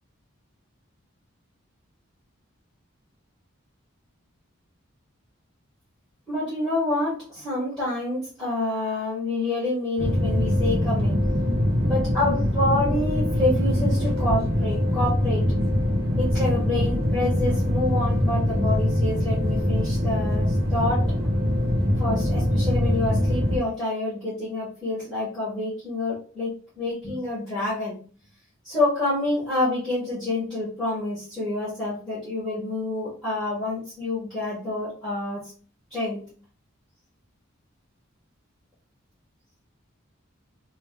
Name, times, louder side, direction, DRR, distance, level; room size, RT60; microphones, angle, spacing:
voice 1, 6.3-11.2 11.8-15.5 16.2-21.1 22.0-26.5 26.8-28.0 28.6-35.5 35.9-36.2, left 2 dB, 5° left, -11 dB, 1.7 m, -27 dB
sound 1, 10.0-23.6, equal, 50° right, 1.0 m, -23 dB
3.2 x 3.0 x 3.3 m, 0.40 s
head